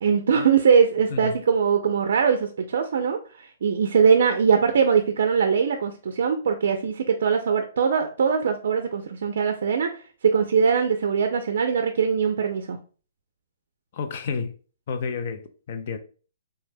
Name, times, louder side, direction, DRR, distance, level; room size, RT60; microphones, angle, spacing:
voice 1, 0.0-9.9 10.3-12.8, right 6 dB, 60° right, 0.4 m, -21 dB
voice 2, 13.9-14.5 14.9-16.0, left 5 dB, 40° left, 0.3 m, -30 dB
3.2 x 2.1 x 3.3 m
hypercardioid pair, 170°, 0 cm